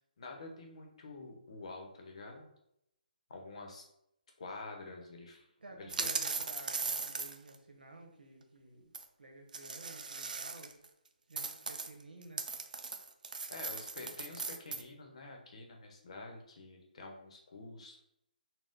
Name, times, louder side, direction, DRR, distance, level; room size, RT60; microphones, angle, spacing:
voice 1, 0.2-2.5 3.3-3.9 4.4-5.5 5.8-6.1 13.5-18.0, left 3 dB, 45° left, 2 dB, 0.8 m, -48 dB
voice 2, 5.6-10.8 11.3-12.6, right 2 dB, 85° right, 2 dB, 1.2 m, -53 dB
sound 1, 5.9-7.6 8.9-9.0 9.5-10.9 11.4-14.8, right 4 dB, 60° right, 0.5 m, -38 dB
4.1 x 2.2 x 3.8 m, 0.78 s
hypercardioid pair, 170°, 5 cm